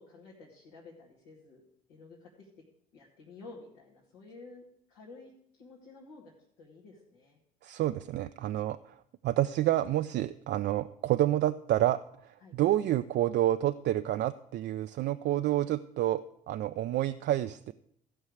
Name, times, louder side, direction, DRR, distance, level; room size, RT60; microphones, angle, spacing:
voice 1, 0.0-1.6 1.9-2.5 2.9-7.4 12.4-12.6, left 3 dB, 80° left, -4 dB, 2.2 m, -52 dB
voice 2, 7.6-8.8 9.2-12.0 12.5-17.7, right 13 dB, 55° right, 9 dB, 0.4 m, -28 dB
15.0 x 5.6 x 6.4 m, 0.71 s
hypercardioid pair, 55°, 21 cm